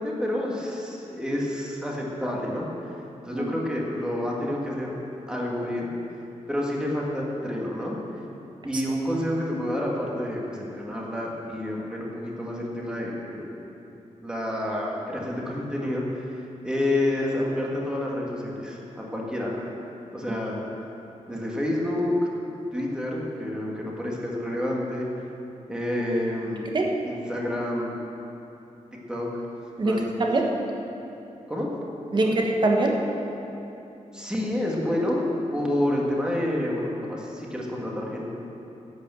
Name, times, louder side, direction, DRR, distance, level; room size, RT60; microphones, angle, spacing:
voice 1, 0.0-2.7 3.3-5.0 5.3-5.9 6.5-8.0 8.6-13.5 14.2-16.3 16.6-19.7 20.1-20.6 21.3-22.2 22.7-25.1 25.7-26.7 27.0-27.9 29.1-29.3 29.8-30.1 31.5-31.7 32.2-32.4 34.1-35.2 35.5-38.2, left 1 dB, 5° right, -3 dB, 1.9 m, -29 dB
voice 2, 29.8-30.5 32.1-33.0, right 2 dB, 40° right, 0 dB, 1.5 m, -23 dB
11.5 x 8.7 x 7.9 m, 2.9 s
wide cardioid pair, 170°, 13 cm